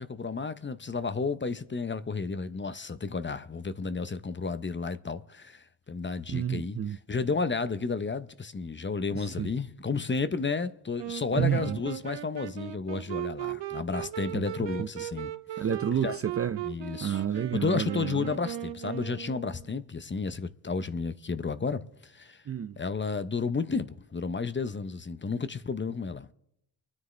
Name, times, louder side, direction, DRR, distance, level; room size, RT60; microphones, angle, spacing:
voice 1, 0.0-6.8 7.1-15.3 16.0-16.1 16.6-17.2 17.5-22.4 22.8-26.3, left 4 dB, 25° left, 0.8 m, -32 dB
voice 2, 6.3-7.0 9.1-9.5 11.4-11.8 14.3-14.9 15.6-16.7 17.0-18.3 22.5-22.8, right 9 dB, 30° right, 0.5 m, -30 dB
Wind instrument woodwind instrument, 11.0-19.7, right 12 dB, 60° right, 0.9 m, -38 dB
25.0 x 9.7 x 3.3 m
supercardioid pair, 60°, 48 cm